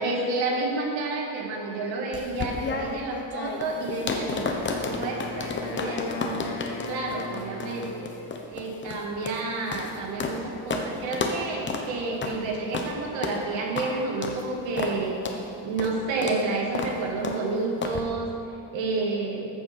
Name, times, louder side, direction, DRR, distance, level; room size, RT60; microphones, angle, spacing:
voice 1, 0.0-8.1 8.5-18.3 18.7-19.5, right 3 dB, 90° right, 0 dB, 2.3 m, -30 dB
sound 1, 2.1-10.4 10.7-10.9 11.1-11.4 11.7-11.9 12.2-12.4 12.7-12.9 13.2-13.4 13.8-13.9 14.2-14.4 14.8-15.0 15.2-15.4 15.8-15.9 16.2-16.4 16.7-16.9 17.2-17.4 17.8-18.0, left 4 dB, 25° left, 0.9 m, -31 dB
Wind instrument woodwind instrument, 4.2-8.4, left 3 dB, 70° left, 1.6 m, -37 dB
14.5 x 7.5 x 5.2 m, 2.9 s
cardioid pair, 170°, 44 cm